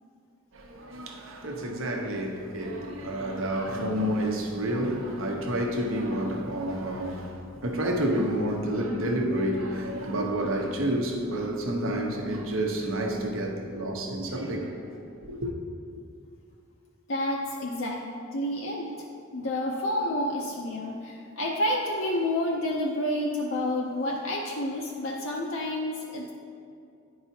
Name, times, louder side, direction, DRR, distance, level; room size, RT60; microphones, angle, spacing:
voice 1, 0.5-15.0 15.2-15.5, right 1 dB, 70° right, 0.8 m, -29 dB
voice 2, 17.1-18.1 18.3-19.1 19.3-26.3, left 1 dB, 65° left, 0.5 m, -29 dB
10.0 x 4.8 x 2.8 m
head